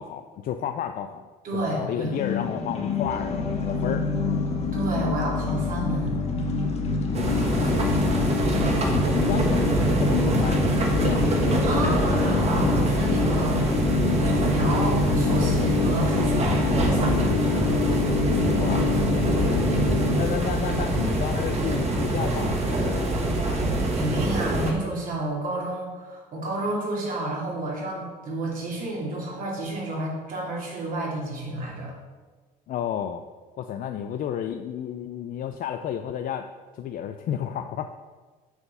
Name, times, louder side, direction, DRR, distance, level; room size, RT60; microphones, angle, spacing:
voice 1, 0.0-4.1 7.1-8.0 9.0-9.7 10.0-11.3 15.4-15.7 18.5-19.5 20.1-23.6 32.7-33.2 33.6-36.5 36.7-37.9, left 9 dB, 55° left, 7 dB, 0.4 m, -32 dB
voice 2, 1.4-2.2 4.7-6.2 7.6-8.1 11.6-13.7 14.2-17.3 23.8-31.9, right 1 dB, 55° right, -3 dB, 2.8 m, -30 dB
sound 1, 2.1-20.2, left 3 dB, 40° left, 1.2 m, -25 dB
sound 2, 7.1-24.7, right 2 dB, 40° right, 1.4 m, -25 dB
7.0 x 4.4 x 6.7 m, 1.3 s
cardioid pair, 110°, 17 cm